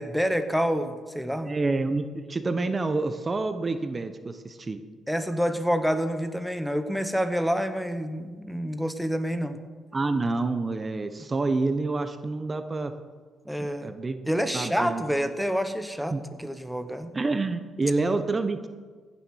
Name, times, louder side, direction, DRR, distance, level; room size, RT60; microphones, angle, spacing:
voice 1, 0.0-1.6 5.1-9.6 13.5-13.9 14.3-17.1, equal, ahead, 9 dB, 0.9 m, -28 dB
voice 2, 1.4-4.8 9.9-12.9 13.6-15.0 16.1-16.2 17.1-18.7, right 3 dB, 30° right, 9 dB, 0.9 m, -28 dB
15.5 x 7.1 x 6.3 m, 1.5 s
cardioid pair, 90°, 0 cm